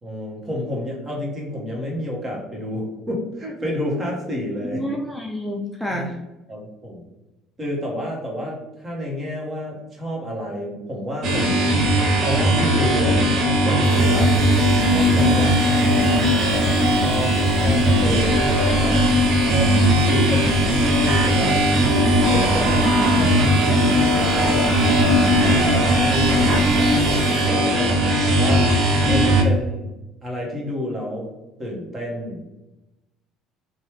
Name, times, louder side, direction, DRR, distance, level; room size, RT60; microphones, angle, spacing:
voice 1, 0.0-4.8 5.9-6.1 6.5-7.1 7.6-11.8 12.2-14.3 14.9-19.0 19.5-21.6 22.3-24.8 25.4-27.0 27.4-27.9 28.4-28.7 29.1-29.9 30.2-31.3 31.6-32.4, left 1 dB, 25° right, -2 dB, 1.1 m, -29 dB
voice 2, 4.7-6.2 18.0-18.3 27.6-28.4, left 1 dB, 5° right, 1 dB, 0.4 m, -30 dB
sound 1, 11.2-29.4, equal, 50° right, 0.6 m, -18 dB
sound 2, 13.8-27.5, left 1 dB, 45° left, 0.9 m, -32 dB
3.0 x 2.3 x 3.1 m, 1.0 s
cardioid pair, 110°, 0 cm